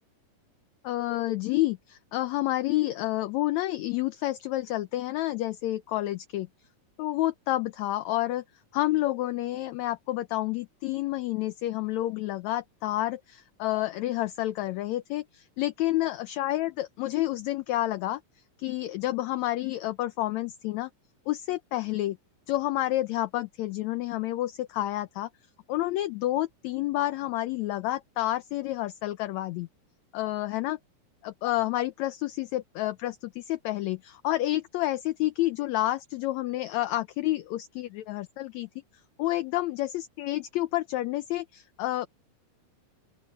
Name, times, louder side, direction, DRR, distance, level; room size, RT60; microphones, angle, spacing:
voice 1, 0.8-6.5 7.0-8.4 8.7-18.2 18.6-20.9 21.3-22.2 22.5-25.3 25.7-29.7 30.1-30.8 31.2-38.7 39.2-42.1, left 15 dB, 75° left, 1.8 m, -29 dB
open air
omnidirectional pair, 3.7 m